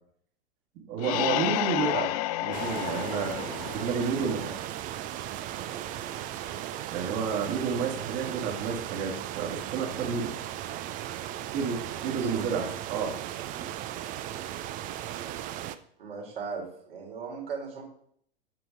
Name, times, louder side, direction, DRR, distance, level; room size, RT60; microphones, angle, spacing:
voice 1, 0.8-2.1 2.4-4.5 6.9-10.3 11.5-13.2, right 6 dB, 40° right, 1 dB, 2.3 m, -31 dB
sound 1, 1.0-4.6, left 15 dB, 40° left, 0.4 m, -31 dB
sound 2, 2.5-15.8, right 12 dB, 25° right, 0.5 m, -37 dB
voice 2, 12.1-12.5 16.0-17.8, right 5 dB, 65° right, -1 dB, 3.3 m, -37 dB
9.0 x 7.0 x 3.9 m, 0.64 s
figure-of-eight pair, 95°, 31 cm